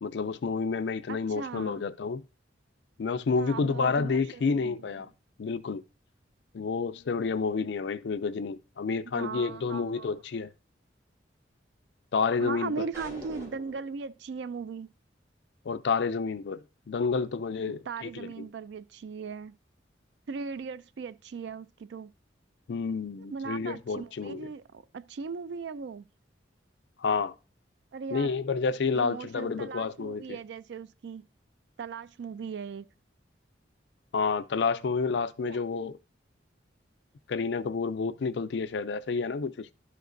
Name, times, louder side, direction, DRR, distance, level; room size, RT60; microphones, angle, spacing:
voice 1, 0.0-2.2 3.0-5.1 5.4-5.8 6.5-10.5 12.1-12.9 15.7-18.5 22.7-24.5 27.0-27.3 28.1-30.4 34.1-36.0 37.3-39.7, left 4 dB, 65° left, 0.4 m, -29 dB
voice 2, 1.1-1.8 3.4-4.9 9.1-10.2 12.4-14.9 17.1-17.2 17.7-19.5 20.3-22.1 23.3-26.1 27.9-28.4 28.9-31.3 31.8-32.9 35.4-35.6, right 5 dB, 65° right, 0.4 m, -38 dB
sound 1, 12.9-14.0, left 1 dB, 15° right, 2.8 m, -43 dB
11.5 x 5.1 x 2.6 m
head